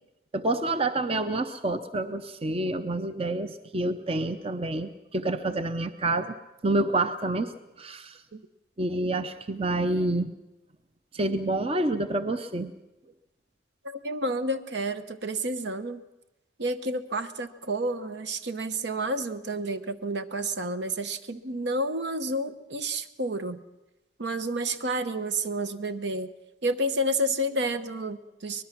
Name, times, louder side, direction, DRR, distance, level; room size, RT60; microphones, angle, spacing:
voice 1, 0.3-6.3 6.6-7.5 7.8-8.2 8.8-10.3 11.1-12.7, right 2 dB, 30° right, 9 dB, 0.7 m, -28 dB
voice 2, 13.8-16.0 16.6-23.6 24.2-26.3 26.6-28.6, right 1 dB, 65° right, 10 dB, 0.9 m, -30 dB
23.5 x 20.5 x 6.0 m, 0.99 s
head